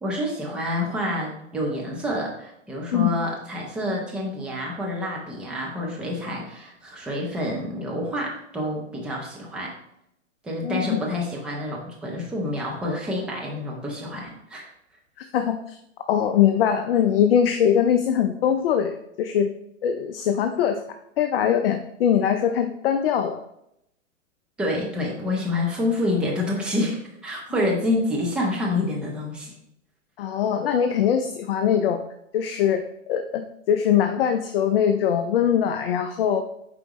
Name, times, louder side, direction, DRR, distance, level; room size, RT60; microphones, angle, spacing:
voice 1, 0.0-9.7 10.4-14.7 24.6-29.5, left 1 dB, 5° right, -2 dB, 0.4 m, -28 dB
voice 2, 15.3-15.8 16.1-19.5 19.8-20.8 21.2-23.4 30.2-32.0 32.3-36.4, left 9 dB, 45° left, 7 dB, 0.6 m, -22 dB
7.7 x 4.7 x 3.0 m, 0.78 s
hypercardioid pair, 130°, 39 cm